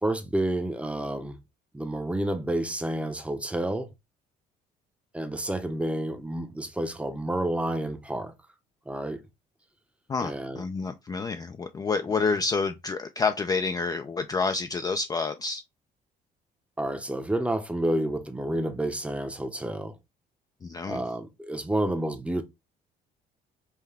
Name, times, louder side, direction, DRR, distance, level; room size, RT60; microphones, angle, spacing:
voice 1, 0.0-1.4 1.7-3.9 5.1-8.3 8.9-9.2 10.2-10.6 16.8-20.0 20.9-22.4, right 1 dB, 5° right, 0.7 m, -29 dB
voice 2, 10.1-15.6 20.6-21.0, left 4 dB, 20° left, 0.4 m, -28 dB
5.6 x 2.2 x 3.4 m
cardioid pair, 110°, 17 cm